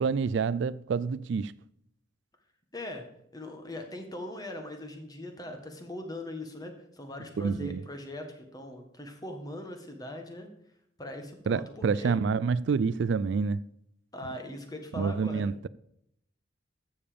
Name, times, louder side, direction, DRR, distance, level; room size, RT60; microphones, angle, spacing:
voice 1, 0.0-1.5 7.4-7.8 11.5-13.6 15.0-15.7, right 5 dB, 65° right, 0.3 m, -28 dB
voice 2, 2.7-3.1 3.3-10.5 11.0-12.2 14.1-15.5, left 1 dB, 20° left, 1.5 m, -40 dB
13.5 x 7.2 x 5.1 m
head